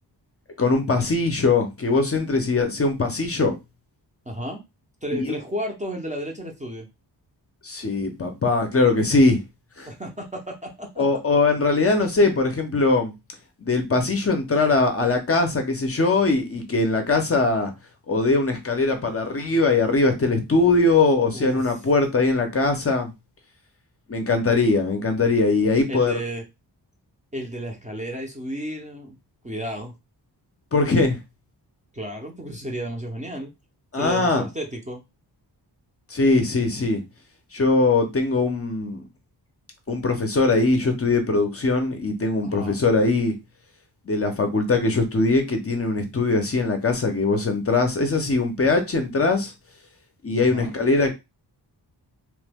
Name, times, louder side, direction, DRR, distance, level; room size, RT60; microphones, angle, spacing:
voice 1, 0.6-3.6 5.1-5.3 7.6-9.4 9.8-9.9 11.0-13.1 13.6-17.7 18.1-23.1 24.1-26.1 30.7-31.2 33.9-34.5 36.1-37.0 37.5-39.0 39.9-43.3 44.1-49.5 50.2-51.1, left 3 dB, 35° left, 0.5 m, -21 dB
voice 2, 4.3-4.6 5.0-6.9 9.9-11.1 21.3-21.8 25.9-26.4 27.3-29.2 29.4-30.0 31.9-33.5 33.9-35.0 42.4-42.8 50.4-50.7, equal, 20° right, 0.5 m, -33 dB
3.0 x 2.1 x 3.3 m
wide cardioid pair, 145°, 43 cm